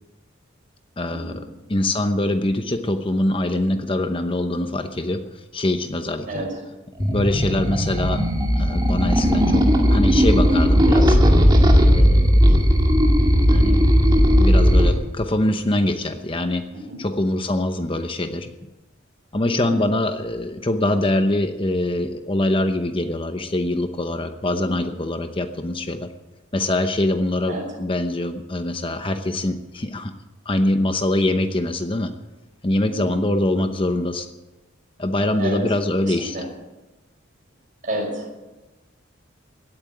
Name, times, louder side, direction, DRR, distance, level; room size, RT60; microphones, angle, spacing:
voice 1, 1.0-1.4 1.7-6.4 7.0-8.2 8.5-9.6 9.9-11.2 11.9-12.4 13.5-13.8 14.1-16.6 17.0-18.5 19.3-26.1 26.5-30.1 30.5-32.1 32.6-34.3 35.0-36.4, left 1 dB, 25° left, 7 dB, 0.8 m, -23 dB
voice 2, 6.3-6.6 16.7-17.0 19.5-19.7 24.6-24.8 27.5-27.7 32.8-33.0 35.4-35.6 36.1-36.4 37.8-38.4, right 1 dB, 40° right, -1 dB, 6.0 m, -30 dB
sound 1, 7.0-14.9, equal, 20° right, 2.1 m, -16 dB
17.0 x 8.8 x 9.1 m, 1.1 s
head